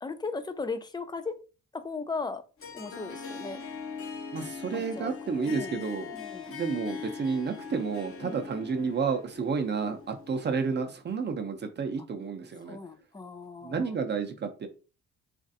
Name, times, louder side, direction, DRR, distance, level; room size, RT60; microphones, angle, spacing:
voice 1, 0.0-1.4 1.7-2.4 2.7-3.6 4.7-5.2 5.4-5.8 6.1-6.5 8.2-8.5 12.7-13.9, left 4 dB, 15° left, 10 dB, 0.4 m, -37 dB
Harp, 2.6-11.0, left 6 dB, 45° left, 0.8 m, -41 dB
voice 2, 4.3-6.1 6.5-12.8 13.6-14.7, right 5 dB, 35° right, 6 dB, 0.6 m, -31 dB
3.1 x 2.5 x 2.6 m, 0.34 s
cardioid pair, 90°, 30 cm